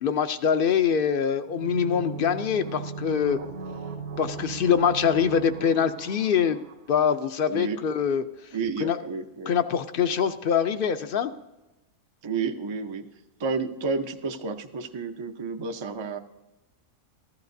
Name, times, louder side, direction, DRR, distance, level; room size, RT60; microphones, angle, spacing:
voice 1, 0.0-3.4 4.2-6.6 6.9-8.2 8.8-9.0 9.5-11.3, left 7 dB, 65° left, 10 dB, 0.5 m, -24 dB
sound 1, 1.5-7.2 7.4-7.5, right 4 dB, 75° right, 1.2 m, -37 dB
voice 2, 7.5-7.8 8.5-9.5 12.2-13.1 13.4-16.2, right 4 dB, 50° right, 5 dB, 0.3 m, -31 dB
14.5 x 12.5 x 2.6 m, 1.0 s
omnidirectional pair, 1.4 m